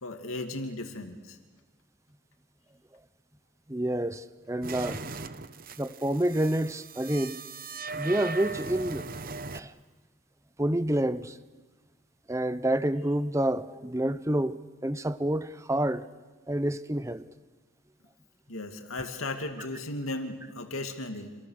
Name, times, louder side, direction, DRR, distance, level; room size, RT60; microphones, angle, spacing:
voice 1, 0.0-1.4 18.5-21.4, left 2 dB, 80° left, 2.5 m, -36 dB
voice 2, 3.7-5.0 5.8-7.4 8.0-9.1 9.5-9.7 10.6-11.4 12.3-16.0 16.5-17.2, right 1 dB, 15° right, 0.7 m, -28 dB
sound 1, 4.6-9.6, right 3 dB, 40° right, 0.9 m, -39 dB
27.5 x 27.5 x 6.6 m
head